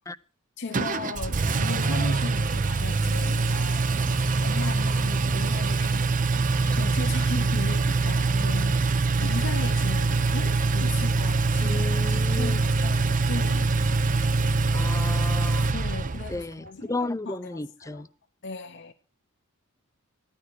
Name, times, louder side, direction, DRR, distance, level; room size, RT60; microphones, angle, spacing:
voice 1, 0.6-6.4 6.7-13.7 15.7-18.0 18.4-18.9, left 3 dB, 55° left, 0.9 m, -37 dB
Engine, 0.7-16.4, right 3 dB, 40° right, 0.7 m, -24 dB
voice 2, 11.6-12.6 14.7-15.7 16.3-18.1, left 2 dB, 15° left, 0.6 m, -33 dB
15.0 x 12.0 x 4.6 m
head